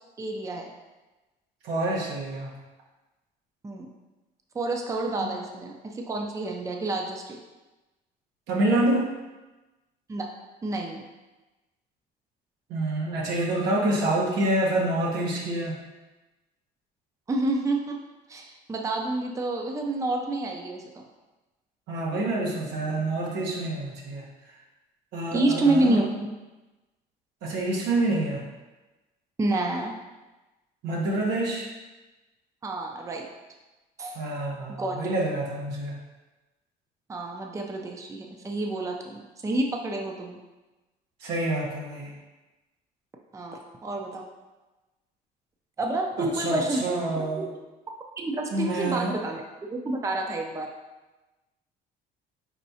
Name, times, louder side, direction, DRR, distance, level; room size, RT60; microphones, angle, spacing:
voice 1, 0.2-0.7 3.6-3.9 4.5-7.4 10.1-10.3 10.6-11.0 17.3-18.0 18.3-21.0 25.3-26.3 29.4-29.9 32.6-33.3 34.0-34.2 34.7-35.1 37.1-40.4 43.3-44.2 45.8-47.4 48.2-50.7, right 2 dB, 20° right, 1 dB, 0.5 m, -29 dB
voice 2, 1.6-2.5 8.5-9.1 12.7-15.8 21.9-24.2 25.1-26.0 27.4-28.4 30.8-31.7 34.1-36.0 41.2-42.1 46.2-47.5 48.5-49.1, right 2 dB, 85° right, -3 dB, 1.2 m, -27 dB
4.5 x 4.3 x 2.7 m, 1.1 s
cardioid pair, 110°, 17 cm